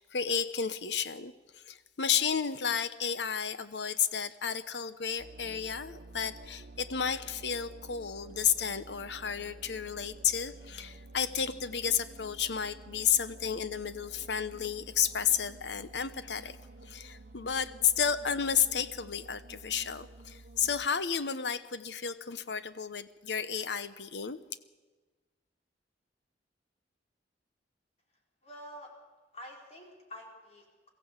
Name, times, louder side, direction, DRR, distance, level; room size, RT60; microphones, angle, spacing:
voice 1, 0.0-16.6 16.8-24.4, left 7 dB, 70° left, 13 dB, 1.0 m, -32 dB
sound 1, 5.2-20.9, right 2 dB, 55° right, 1.0 m, -51 dB
voice 2, 28.4-28.9 29.3-30.9, equal, 40° left, 0 dB, 4.4 m, -48 dB
22.5 x 15.0 x 8.2 m, 1.3 s
head